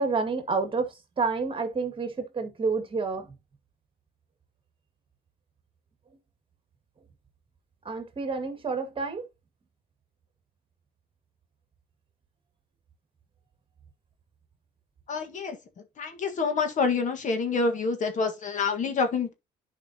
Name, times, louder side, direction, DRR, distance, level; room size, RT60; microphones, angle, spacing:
voice 1, 0.0-3.4 7.9-9.3, right 4 dB, 30° right, 2.0 m, -29 dB
voice 2, 15.1-15.6 16.0-19.3, left 4 dB, 45° left, 1.7 m, -27 dB
10.5 x 5.0 x 2.9 m
cardioid pair, 110°, 17 cm